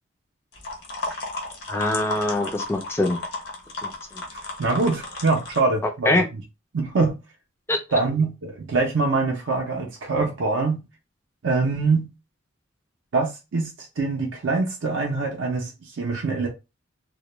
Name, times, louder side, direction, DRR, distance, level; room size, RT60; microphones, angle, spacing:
sound 1, 0.5-5.6, left 2 dB, 50° left, 0.7 m, -34 dB
voice 1, 1.7-3.2 3.8-4.2 6.1-6.2 7.7-7.8, left 2 dB, 10° left, 0.3 m, -23 dB
voice 2, 4.6-6.2 6.7-7.2 7.9-10.8 11.4-12.1 13.1-16.5, right 3 dB, 65° right, 0.5 m, -24 dB
2.2 x 2.1 x 2.9 m
head